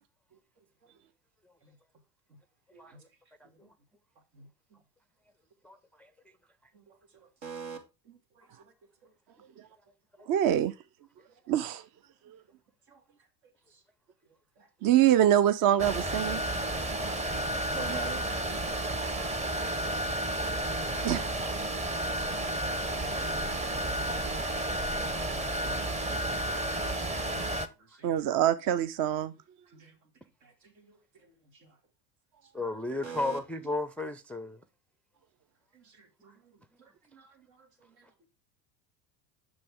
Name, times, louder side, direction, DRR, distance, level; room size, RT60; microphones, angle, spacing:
voice 1, 5.6-6.1 26.3-26.8 27.9-28.0 32.5-34.6, left 2 dB, 5° left, 0.4 m, -35 dB
voice 2, 6.7-7.8 8.0-8.7 9.0-9.1 12.9-13.0 14.6-14.7 17.7-18.3 22.3-22.6 27.1-28.1 29.7-30.0 30.4-31.8 32.7-32.8 33.0-33.4 35.7-38.3, right 4 dB, 75° right, 2.8 m, -47 dB
voice 3, 10.3-10.7 11.5-11.8 12.3-12.4 14.8-16.4 21.0-21.2 26.1-26.2 28.0-29.3, right 11 dB, 45° right, 0.6 m, -24 dB
sound 1, 15.8-27.7, right 1 dB, 15° right, 0.8 m, -31 dB
7.6 x 6.3 x 3.7 m
hypercardioid pair, 85°, 50 cm